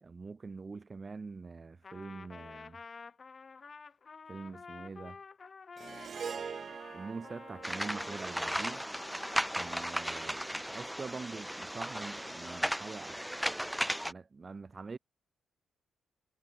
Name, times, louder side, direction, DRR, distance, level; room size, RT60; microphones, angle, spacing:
voice 1, 0.0-2.8 4.3-5.2 5.8-8.9 9.5-13.6 14.0-15.0, right 4 dB, 40° right, 1.4 m, -45 dB
Trumpet, 1.8-9.9, left 5 dB, 45° left, 5.2 m, -50 dB
Harp, 5.8-10.2, right 6 dB, 55° right, 3.7 m, -45 dB
sound 1, 7.6-14.1, equal, 5° right, 1.0 m, -36 dB
supercardioid pair, 50°, 0 cm